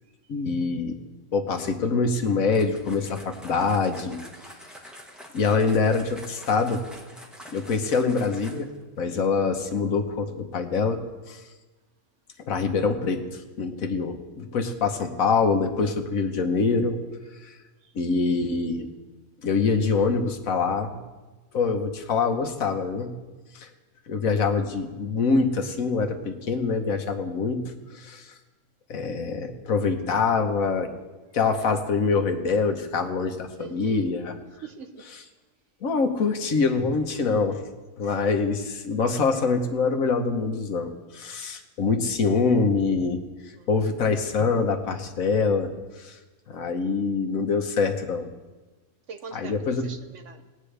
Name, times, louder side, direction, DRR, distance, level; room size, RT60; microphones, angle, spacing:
voice 1, 0.3-1.0 1.3-4.2 5.3-6.8 7.5-8.7 9.0-11.0 11.3-11.4 12.5-17.0 17.4-17.5 17.9-18.9 19.4-21.0 21.5-23.1 23.5-23.7 24.1-27.6 27.9-28.3 28.9-30.9 31.3-34.3 35.8-37.6 38.0-43.2 43.7-45.7 46.0-46.2 46.5-48.3 49.3-49.9, left 4 dB, 65° left, 5 dB, 1.4 m, -25 dB
sound 1, 2.5-8.8, equal, ahead, 1.3 m, -46 dB
voice 2, 33.6-34.2 34.6-35.1 43.5-43.7 49.1-50.5, right 5 dB, 60° right, 8 dB, 1.0 m, -42 dB
20.5 x 8.9 x 3.3 m, 1.2 s
omnidirectional pair, 1.6 m